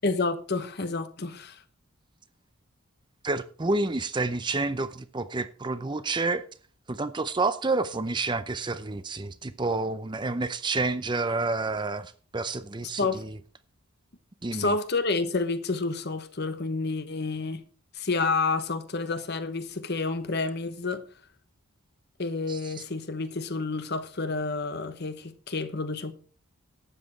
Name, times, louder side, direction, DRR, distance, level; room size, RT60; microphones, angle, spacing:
voice 1, 0.0-1.6 13.0-13.3 14.5-17.6 17.9-21.0 22.2-26.1, left 3 dB, 45° left, 1.0 m, -29 dB
voice 2, 3.2-6.4 6.9-13.4 14.4-14.7 22.5-22.8, right 3 dB, 20° right, 0.5 m, -29 dB
12.5 x 8.6 x 4.5 m
head